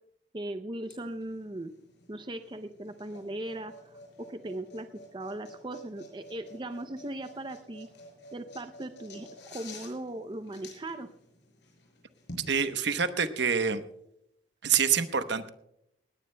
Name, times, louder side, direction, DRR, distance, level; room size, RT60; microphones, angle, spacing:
voice 1, 0.3-1.7 2.1-7.9 8.3-11.1, right 1 dB, 25° right, 9 dB, 0.5 m, -38 dB
sound 1, 0.8-12.5, left 1 dB, 65° left, 5.7 m, -51 dB
voice 2, 12.5-13.8 14.6-15.5, right 7 dB, 65° right, 10 dB, 0.9 m, -26 dB
19.0 x 18.0 x 2.2 m, 0.77 s
head